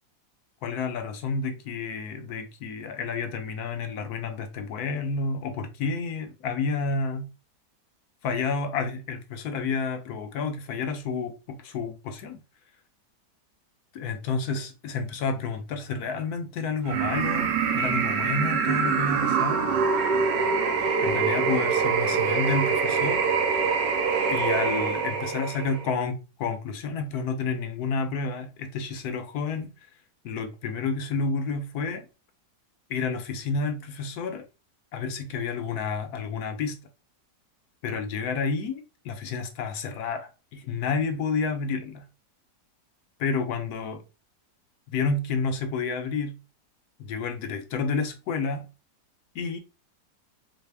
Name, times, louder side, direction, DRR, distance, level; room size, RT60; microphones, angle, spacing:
voice 1, 0.6-7.3 8.2-12.4 13.9-19.8 21.0-23.2 24.3-29.7 30.2-32.1 32.9-34.4 34.9-36.8 37.8-42.1 43.2-44.0 44.9-46.4 47.0-48.7 49.3-49.6, left 4 dB, 70° left, 1.0 m, -30 dB
sound 1, 16.9-25.9, right 5 dB, 90° right, 1.3 m, -25 dB
4.0 x 2.1 x 3.3 m
omnidirectional pair, 1.8 m